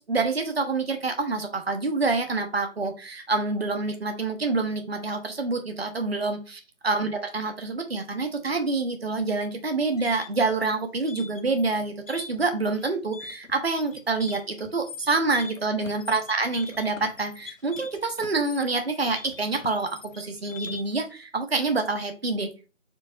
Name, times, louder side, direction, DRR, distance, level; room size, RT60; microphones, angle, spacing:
voice 1, 0.0-22.5, right 3 dB, 50° right, 6 dB, 0.8 m, -27 dB
sound 1, 9.7-21.0, left 4 dB, 70° left, 0.7 m, -43 dB
4.5 x 4.0 x 2.5 m, 0.32 s
figure-of-eight pair, 175°, 40 cm